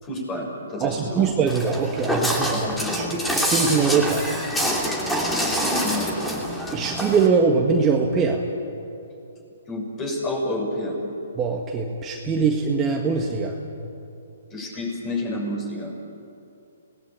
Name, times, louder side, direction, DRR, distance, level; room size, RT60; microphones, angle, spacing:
voice 1, 0.0-1.3 2.5-3.1 5.4-6.3 9.7-11.0 14.5-15.9, left 1 dB, 20° left, 1 dB, 6.5 m, -29 dB
voice 2, 0.8-2.7 2.9-4.3 6.7-8.4 11.4-13.5, right 5 dB, 20° right, 0 dB, 1.8 m, -22 dB
Walk footsteps, 1.5-7.3, equal, 5° left, 2.8 m, -26 dB
27.0 x 19.0 x 8.7 m, 2.7 s
hypercardioid pair, 145°, 0 cm